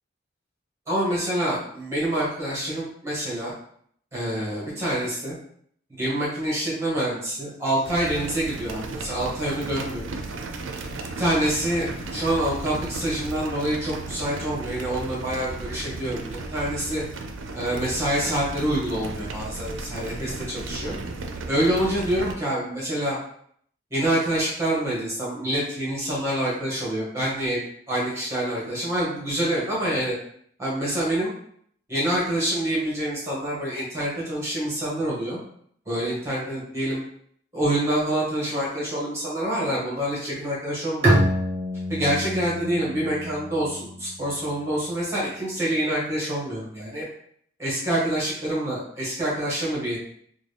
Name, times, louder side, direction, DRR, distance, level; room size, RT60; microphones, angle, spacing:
voice 1, 0.9-3.5 4.1-5.3 5.9-10.1 11.2-17.0 17.5-20.9 21.5-23.2 23.9-27.6 27.9-30.1 30.6-31.3 31.9-35.4 35.8-37.0 37.5-41.2 41.9-47.0 47.6-50.0, right 1 dB, 15° right, -7 dB, 1.4 m, -26 dB
sound 1, 7.8-22.3, right 3 dB, 75° right, 0.4 m, -35 dB
Bowed string instrument, 41.0-44.6, right 1 dB, 30° right, 0.8 m, -26 dB
3.7 x 2.3 x 3.3 m, 0.64 s
head